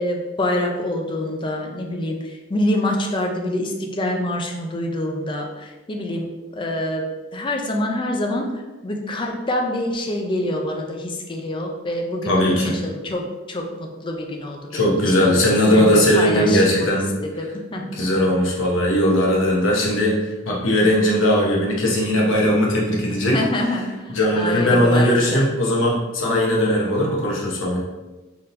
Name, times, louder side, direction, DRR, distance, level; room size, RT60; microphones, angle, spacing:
voice 1, 0.0-7.1 7.3-8.5 8.8-13.7 14.0-14.8 15.3-16.9 17.2-17.9 23.2-25.4, left 1 dB, 25° left, 2 dB, 0.5 m, -26 dB
voice 2, 12.3-12.8 14.7-17.0 17.9-23.4 24.1-27.8, equal, 75° left, -3 dB, 1.0 m, -19 dB
4.3 x 3.7 x 2.6 m, 1.2 s
head